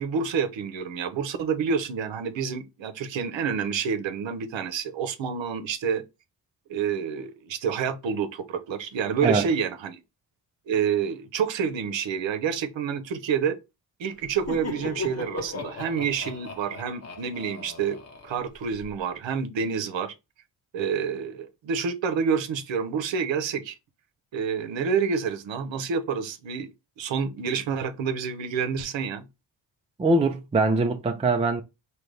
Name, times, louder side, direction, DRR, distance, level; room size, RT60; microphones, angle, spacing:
voice 1, 0.0-6.0 6.7-10.0 10.7-13.6 14.0-18.0 18.2-20.1 20.7-23.8 24.3-26.7 27.0-29.2, right 6 dB, 70° right, 0.8 m, -28 dB
Laughter, 14.2-18.9, left 4 dB, 35° left, 0.9 m, -37 dB
voice 2, 30.0-31.6, right 3 dB, 15° right, 0.4 m, -22 dB
3.8 x 3.0 x 3.2 m
cardioid pair, 80°, 47 cm